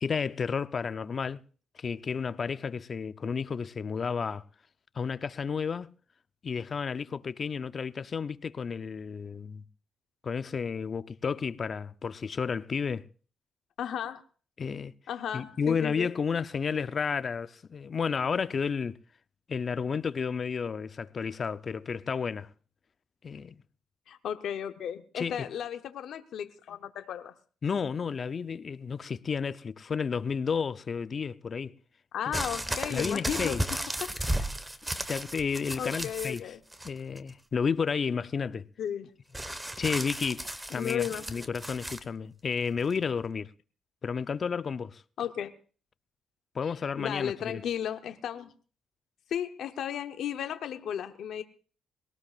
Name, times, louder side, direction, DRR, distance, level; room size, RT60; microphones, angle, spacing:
voice 1, 0.0-1.4 1.8-4.4 5.0-5.9 6.4-9.6 10.2-13.0 14.6-14.9 15.3-19.0 19.5-22.5 23.2-23.6 25.2-25.5 27.6-31.7 32.9-33.6 35.1-36.4 36.8-38.7 39.8-43.5 44.0-45.0 46.5-47.6, left 6 dB, 40° left, 0.6 m, -32 dB
voice 2, 13.8-14.2 15.1-16.1 24.1-27.3 32.1-33.6 34.0-34.4 35.8-36.6 38.8-39.1 40.7-41.5 45.2-45.5 46.6-46.7 47.0-48.5 49.3-51.4, left 9 dB, 70° left, 0.8 m, -34 dB
sound 1, 32.3-36.4 36.7-37.3 39.3-42.0 42.9-43.0, right 1 dB, 10° right, 1.3 m, -34 dB
22.0 x 18.0 x 2.5 m
cardioid pair, 90°, 0 cm